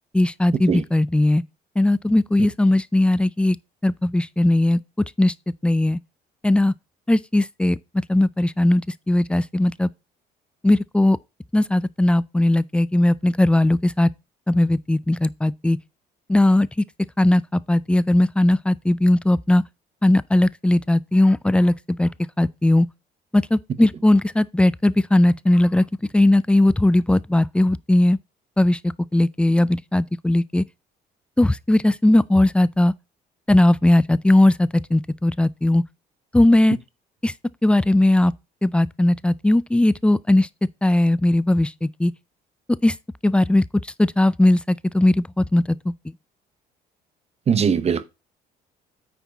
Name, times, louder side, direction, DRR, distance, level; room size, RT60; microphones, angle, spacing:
voice 1, 0.1-1.4 1.8-3.6 3.8-4.8 5.2-5.3 5.6-6.0 6.4-6.7 7.1-7.8 8.1-8.8 9.1-9.9 10.6-11.2 11.5-14.1 14.5-15.8 16.3-16.7 17.2-19.6 20.0-22.1 22.4-22.9 23.3-25.8 26.1-28.2 28.6-28.8 29.1-30.6 31.4-32.9 33.5-35.8 36.3-36.8 37.2-37.3 37.6-38.3 38.6-40.5 40.8-42.1 42.8-42.9 43.2-43.6 44.0-45.8, left 1 dB, 5° left, 0.4 m, -18 dB
voice 2, 47.5-48.0, right 7 dB, 35° right, 0.9 m, -20 dB
9.2 x 4.7 x 4.1 m
cardioid pair, 100°, 18 cm